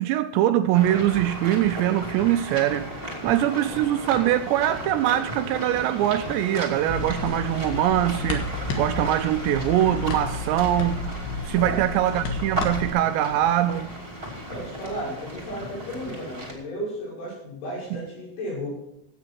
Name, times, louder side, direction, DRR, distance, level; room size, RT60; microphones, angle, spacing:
voice 1, 0.0-8.5 8.8-11.0 11.4-13.9 17.9-18.0, right 12 dB, 85° right, 2.5 m, -23 dB
sound 1, 0.7-16.5, right 1 dB, 20° right, 1.5 m, -35 dB
voice 2, 3.1-3.8 11.6-11.9 14.5-18.7, equal, 85° left, 8.5 m, -34 dB
Wind instrument woodwind instrument, 5.0-8.5, left 4 dB, 40° left, 3.0 m, -45 dB
sound 2, 6.9-12.9, left 3 dB, 65° left, 3.0 m, -32 dB
16.0 x 8.5 x 4.5 m
omnidirectional pair, 5.3 m